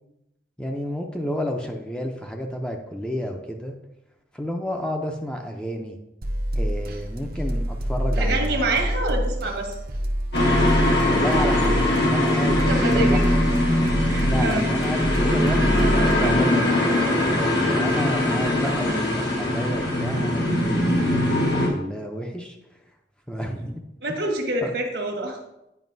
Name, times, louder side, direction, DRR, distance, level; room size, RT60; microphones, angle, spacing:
voice 1, 0.6-3.8 4.3-6.0 6.6-8.8 11.0-13.4 14.2-17.0 17.6-22.6 23.3-23.8 24.6-24.7, equal, 5° left, 2 dB, 0.5 m, -31 dB
sound 1, 6.2-16.4, equal, 55° right, 0.6 m, -26 dB
voice 2, 8.2-9.8 12.7-13.2 14.0-14.6 24.0-25.4, right 2 dB, 70° right, 2 dB, 1.2 m, -26 dB
sound 2, 10.3-21.7, left 1 dB, 85° left, 1.7 m, -21 dB
9.2 x 5.2 x 2.6 m, 0.89 s
head